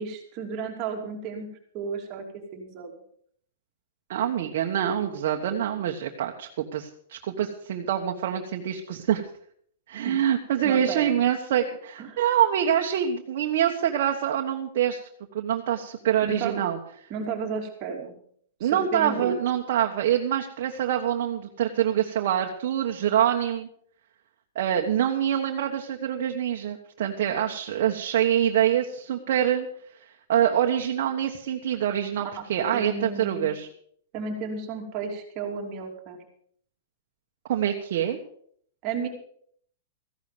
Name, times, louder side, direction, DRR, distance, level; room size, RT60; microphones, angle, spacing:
voice 1, 0.0-1.5 1.7-2.2 2.5-2.9 10.1-10.2 10.6-11.2 12.0-12.2 16.2-16.6 17.1-18.1 18.6-19.3 32.4-33.5 34.1-36.2 38.8-39.1, right 5 dB, 30° right, 1 dB, 2.9 m, -33 dB
voice 2, 4.1-9.2 9.9-15.0 15.3-16.8 18.6-23.7 24.5-29.7 30.0-33.7 37.5-38.2, right 10 dB, 55° right, 2 dB, 1.3 m, -25 dB
14.5 x 11.5 x 5.1 m, 0.63 s
hypercardioid pair, 160°, 0 cm